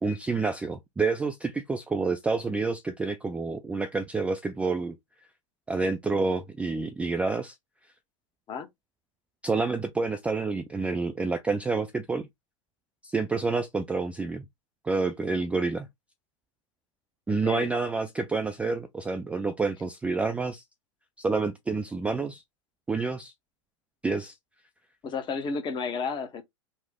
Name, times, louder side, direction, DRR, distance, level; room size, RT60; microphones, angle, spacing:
voice 1, 0.0-5.0 5.7-7.5 9.4-12.3 13.0-14.4 14.8-15.9 17.3-20.6 21.2-22.4 22.9-23.3 24.0-24.4, right 4 dB, 10° right, 0.3 m, -28 dB
voice 2, 17.3-17.7 25.0-26.4, left 5 dB, 30° left, 0.8 m, -32 dB
3.2 x 2.1 x 3.5 m
hypercardioid pair, 105°, 17 cm